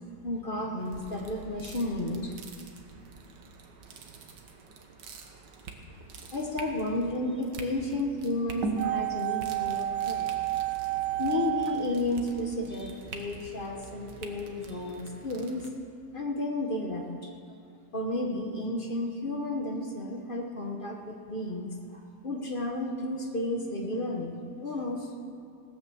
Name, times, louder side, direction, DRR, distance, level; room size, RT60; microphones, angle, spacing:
voice 1, 0.2-2.4 6.3-10.3 11.2-15.7 16.1-17.3 17.9-25.1, left 1 dB, 35° left, 1 dB, 1.1 m, -32 dB
sound 1, 0.8-15.7, right 3 dB, 70° right, 1.8 m, -43 dB
sound 2, 8.8-12.9 13.1-13.2, right 14 dB, 85° right, 1.3 m, -31 dB
17.0 x 8.7 x 7.0 m, 2.4 s
omnidirectional pair, 2.0 m